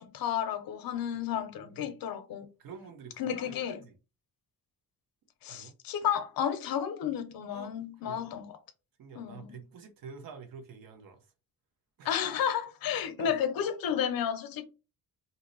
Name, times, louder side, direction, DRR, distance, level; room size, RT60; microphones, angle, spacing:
voice 1, 0.0-2.5 3.2-3.8 5.4-8.6 9.2-9.6 12.0-14.6, left 9 dB, 75° left, 0.6 m, -32 dB
voice 2, 1.1-2.0 2.6-4.0 5.5-5.7 7.5-7.7 8.1-8.2 9.0-11.3 12.0-12.2 12.9-13.4, right 6 dB, 70° right, 0.7 m, -48 dB
2.6 x 2.0 x 3.8 m
wide cardioid pair, 155°, 35 cm